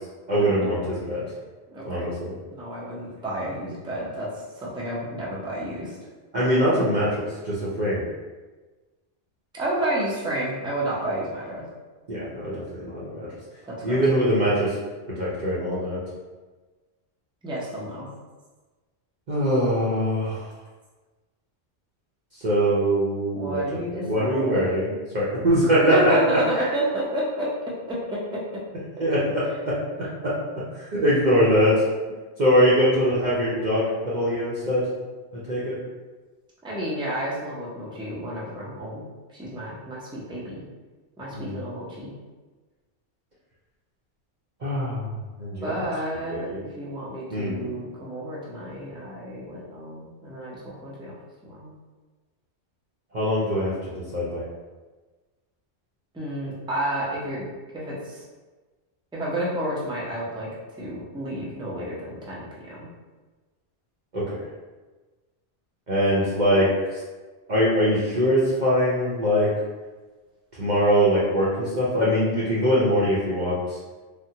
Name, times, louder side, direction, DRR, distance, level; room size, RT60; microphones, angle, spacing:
voice 1, 0.3-1.2 1.8-2.3 6.3-8.0 12.1-13.3 13.8-14.8 15.1-16.0 19.3-20.4 22.4-23.6 23.9-24.8 25.1-26.6 29.0-29.8 30.2-30.3 30.7-31.8 32.4-34.9 35.3-35.8 41.3-41.6 44.6-45.1 45.4-45.7 46.3-46.6 47.3-47.7 53.1-53.7 54.1-54.4 64.1-64.4 65.9-67.0 67.5-69.5 70.5-73.8, equal, 50° right, -9 dB, 0.7 m, -22 dB
voice 2, 1.7-2.1 2.5-6.0 9.5-11.7 13.6-14.0 17.4-18.1 23.3-25.0 25.8-28.4 29.0-29.1 36.6-39.0 39.3-40.6 41.2-42.1 45.6-46.5 46.8-51.2 51.5-51.8 56.1-57.4 57.7-58.2 59.1-60.5 60.8-62.9, right 1 dB, 5° right, -6 dB, 0.4 m, -30 dB
3.5 x 2.1 x 2.8 m, 1.3 s
omnidirectional pair, 1.2 m